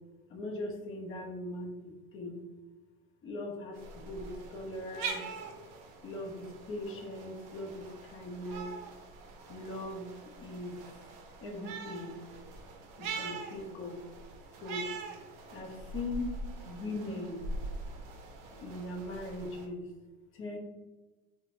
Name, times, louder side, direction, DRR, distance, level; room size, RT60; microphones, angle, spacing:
voice 1, 0.3-2.4 3.2-5.2 6.0-8.7 9.5-10.1 10.4-10.8 11.4-12.1 13.0-14.0 14.6-14.9 15.5-16.3 16.6-17.5 18.6-19.9 20.3-20.6, left 1 dB, 30° left, 1 dB, 0.6 m, -40 dB
sound 1, 3.7-19.7, right 4 dB, 50° right, 0.6 m, -43 dB
2.7 x 2.2 x 2.9 m, 1.2 s
hypercardioid pair, 90°, 42 cm